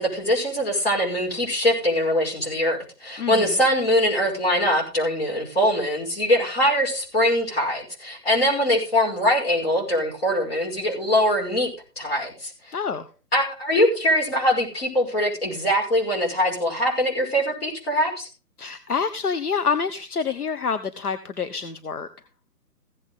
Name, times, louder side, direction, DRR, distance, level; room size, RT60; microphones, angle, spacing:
voice 1, 0.0-11.7 12.0-12.8 13.3-18.3, equal, 40° left, -1 dB, 5.7 m, -22 dB
voice 2, 3.2-3.5 12.7-13.0 18.6-22.1, left 6 dB, 65° left, 10 dB, 1.2 m, -27 dB
16.0 x 8.4 x 3.7 m, 0.35 s
hypercardioid pair, 180°, 48 cm